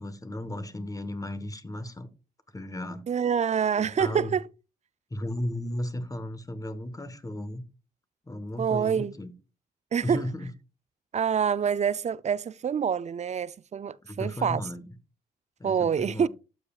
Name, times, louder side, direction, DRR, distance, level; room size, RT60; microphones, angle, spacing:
voice 1, 0.0-2.1 2.5-3.0 3.8-4.3 5.1-7.6 8.3-9.3 10.0-10.5 14.0-14.9 15.6-16.3, left 1 dB, 20° left, 1.2 m, -35 dB
voice 2, 3.1-4.5 8.6-9.1 9.9-10.2 11.1-14.6 15.6-16.3, right 7 dB, 40° right, 0.4 m, -26 dB
12.5 x 5.0 x 2.4 m
supercardioid pair, 55°, 17 cm